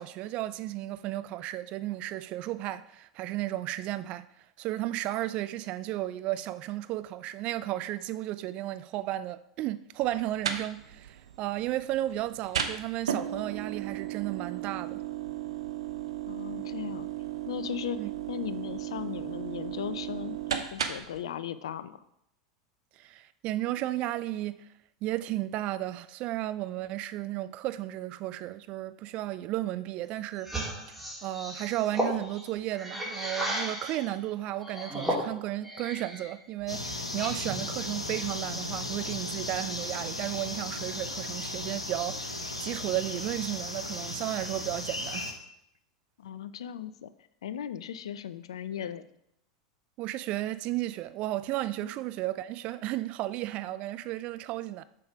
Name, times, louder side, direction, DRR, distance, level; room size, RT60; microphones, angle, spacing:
voice 1, 0.0-4.3 4.6-15.0 18.0-18.1 23.0-24.7 25.0-30.5 30.9-45.3 50.0-54.8, right 15 dB, 40° right, 0.3 m, -34 dB
sound 1, 10.0-21.2, right 10 dB, 70° right, 0.8 m, -36 dB
voice 2, 16.2-17.1 17.5-18.0 18.3-20.4 20.7-22.0 46.2-47.1 47.4-49.1 51.8-51.9, left 9 dB, 65° left, 0.5 m, -37 dB
sound 2, 30.4-34.1 34.6-36.3 36.7-37.7, equal, 5° right, 3.5 m, -34 dB
sound 3, 36.7-45.3, left 2 dB, 90° left, 0.9 m, -36 dB
7.1 x 6.8 x 4.8 m
figure-of-eight pair, 85°, 3 cm